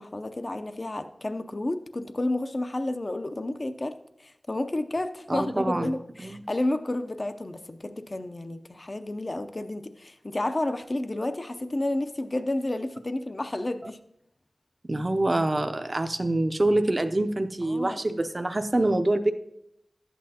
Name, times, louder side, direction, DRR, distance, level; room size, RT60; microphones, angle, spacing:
voice 1, 0.0-3.9 4.2-14.0 17.6-18.0, left 1 dB, 40° left, 9 dB, 0.6 m, -31 dB
voice 2, 5.3-5.9 6.2-6.4 14.9-19.3, right 1 dB, 35° right, 8 dB, 0.6 m, -25 dB
12.0 x 8.5 x 2.8 m, 0.78 s
wide cardioid pair, 65°, 0 cm